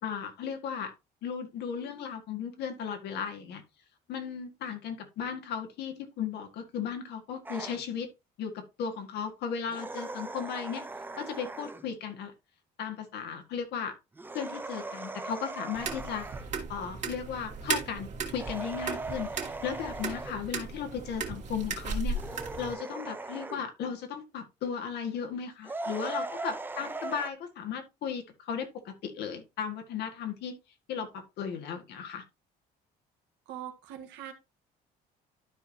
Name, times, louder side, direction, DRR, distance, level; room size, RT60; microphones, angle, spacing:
voice 1, 0.0-0.9 1.2-3.6 4.1-8.1 8.4-10.8 11.2-12.3 12.8-13.9 14.3-16.3 16.7-22.2 22.6-30.5 30.9-32.2, left 7 dB, 75° left, 6 dB, 1.8 m, -36 dB
sound 1, 7.5-7.8 9.7-11.9 14.2-16.5 18.3-20.4 22.1-23.7 25.6-27.3, right 2 dB, 10° right, 0.7 m, -39 dB
sound 2, 15.7-22.7, right 4 dB, 45° right, 2.3 m, -36 dB
voice 2, 33.5-34.3, right 10 dB, 90° right, 4 dB, 1.7 m, -42 dB
12.5 x 4.8 x 2.8 m, 0.25 s
cardioid pair, 110°, 17 cm